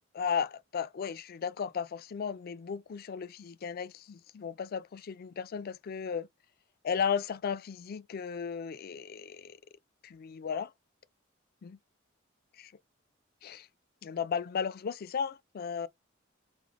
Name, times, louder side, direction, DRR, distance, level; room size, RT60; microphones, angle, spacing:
voice 1, 0.1-6.3 6.8-9.6 10.0-10.7 11.6-11.8 12.6-12.7 13.4-13.7 14.0-15.9, left 6 dB, 50° left, 0.4 m, -35 dB
3.3 x 2.1 x 3.5 m
head